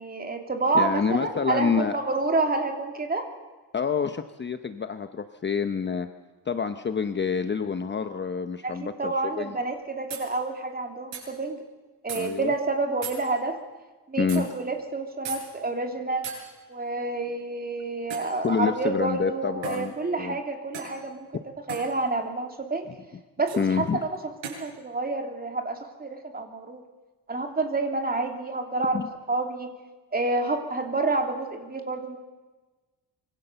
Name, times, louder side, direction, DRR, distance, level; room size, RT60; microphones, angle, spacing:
voice 1, 0.0-3.3 8.6-11.6 12.0-13.6 14.1-16.3 16.7-21.3 21.7-22.9 23.4-24.1 24.5-26.8 27.3-29.7 30.1-32.2, right 3 dB, 20° right, 4 dB, 2.9 m, -28 dB
voice 2, 0.7-2.0 3.7-6.1 6.5-9.6 12.1-12.5 14.2-14.5 18.4-20.4 23.6-24.0 28.9-29.1, left 6 dB, 25° left, 9 dB, 0.8 m, -27 dB
sound 1, 9.6-9.7 10.1-10.3 11.1-11.3 12.1-12.2 13.0-13.2 14.3-14.4 15.2-15.4 16.2-16.4 18.1-18.3 19.6-19.8 20.7-21.0 21.7-21.9 23.5-23.6 24.4-24.6, right 6 dB, 85° right, 8.0 m, -36 dB
25.5 x 24.0 x 6.9 m, 1.2 s
wide cardioid pair, 175°, 43 cm